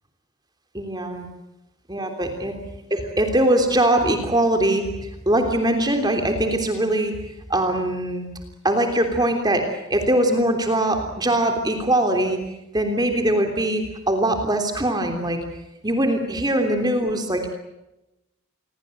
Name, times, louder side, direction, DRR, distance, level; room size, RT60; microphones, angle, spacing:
voice 1, 0.7-1.3 1.9-2.6 2.9-7.1 7.5-8.3 8.6-9.6 9.9-12.4 12.7-15.4 15.8-17.6, right 1 dB, 20° right, 5 dB, 3.3 m, -22 dB
27.5 x 22.5 x 7.8 m, 0.92 s
head